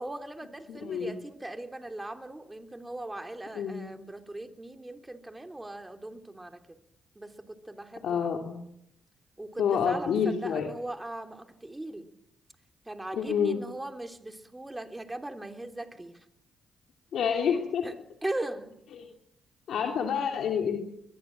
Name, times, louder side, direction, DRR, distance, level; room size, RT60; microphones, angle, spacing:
voice 1, 0.0-6.8 7.1-8.3 9.4-12.1 12.8-16.2 17.8-17.9 18.2-18.8, right 1 dB, 15° right, 6 dB, 3.3 m, -39 dB
voice 2, 0.7-1.1 3.5-3.9 8.0-8.6 9.6-10.7 13.1-13.6 17.1-17.8 18.9-19.1 19.7-20.8, left 7 dB, 75° left, 2 dB, 3.0 m, -28 dB
23.0 x 21.5 x 7.6 m, 0.78 s
cardioid pair, 65°, 0 cm